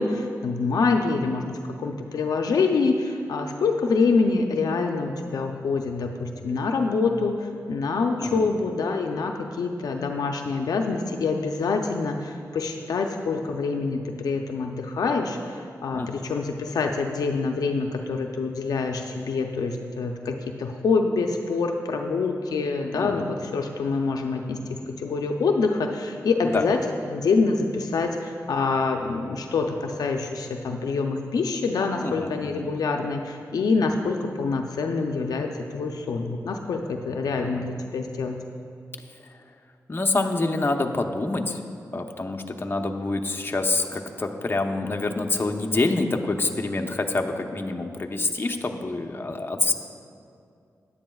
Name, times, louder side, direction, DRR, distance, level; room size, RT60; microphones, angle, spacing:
voice 1, 0.0-26.8 27.1-38.4, left 4 dB, 80° left, 3 dB, 0.5 m, -26 dB
voice 2, 8.2-8.5 15.9-16.2 23.0-23.3 26.4-26.6 32.0-32.7 37.4-37.6 39.9-41.6 41.9-49.7, left 2 dB, 35° left, 3 dB, 0.8 m, -27 dB
15.0 x 9.8 x 2.3 m, 2.4 s
cardioid pair, 60°, 6 cm